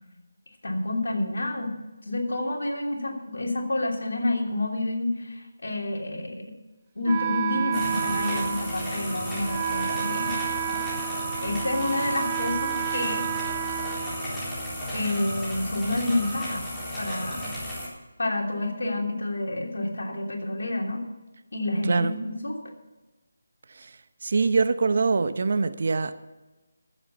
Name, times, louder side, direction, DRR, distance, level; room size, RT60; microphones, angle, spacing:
voice 1, 0.6-1.7 2.1-6.5 6.9-10.8 11.4-13.3 14.9-16.6 17.0-17.5 18.2-21.0 21.5-22.5, left 2 dB, 70° left, 1 dB, 3.1 m, -29 dB
Wind instrument woodwind instrument, 7.1-14.8, right 9 dB, 25° right, 0.6 m, -31 dB
sound 1, 7.7-17.9, equal, 5° left, 3.9 m, -34 dB
voice 2, 23.7-26.1, right 4 dB, 55° right, 12 dB, 0.9 m, -24 dB
15.0 x 7.8 x 7.1 m, 1.1 s
figure-of-eight pair, 160°, 0 cm